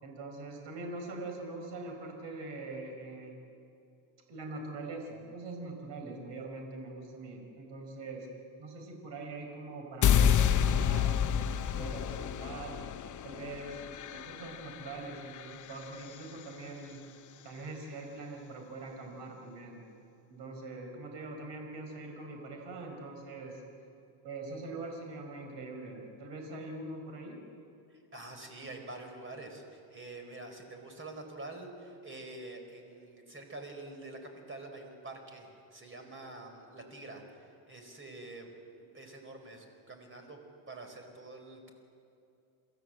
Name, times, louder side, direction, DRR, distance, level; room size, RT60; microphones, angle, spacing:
voice 1, 0.0-3.3 4.3-8.3 8.6-12.8 13.2-17.0 17.4-19.8 20.3-23.6 24.2-27.4, right 2 dB, 60° right, 3 dB, 4.7 m, -43 dB
sound 1, 10.0-16.2, left 8 dB, 40° left, 0.8 m, -29 dB
voice 2, 27.9-34.2 34.5-40.4 40.7-41.7, right 2 dB, 25° right, 5 dB, 4.7 m, -46 dB
28.0 x 14.0 x 7.7 m, 2.6 s
supercardioid pair, 100°, 48 cm